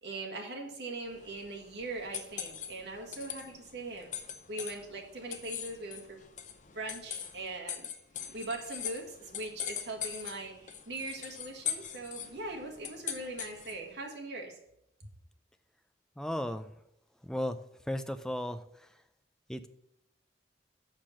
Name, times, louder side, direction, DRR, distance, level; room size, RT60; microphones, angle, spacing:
voice 1, 0.0-4.1 4.5-6.2 6.7-7.9 8.3-14.5, right 2 dB, 70° right, 1 dB, 1.9 m, -41 dB
sound 1, 1.1-13.9, left 8 dB, 40° left, 0.7 m, -42 dB
voice 2, 16.2-16.7 17.2-17.6 17.9-18.6 19.5-19.7, left 1 dB, 5° left, 9 dB, 0.4 m, -34 dB
6.7 x 5.9 x 7.3 m, 0.77 s
head